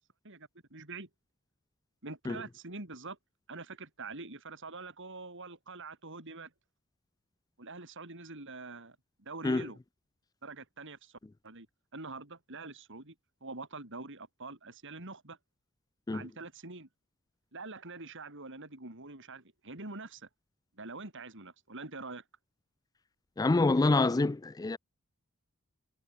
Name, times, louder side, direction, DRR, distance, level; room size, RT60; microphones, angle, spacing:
voice 1, 0.2-1.1 2.0-3.2 3.5-6.5 7.6-9.8 10.4-11.2 11.4-11.7 11.9-13.1 13.4-15.4 16.1-16.9 17.5-20.3 20.8-22.2, right 3 dB, 60° right, 5.0 m, -45 dB
voice 2, 23.4-24.8, left 2 dB, 15° left, 0.4 m, -26 dB
head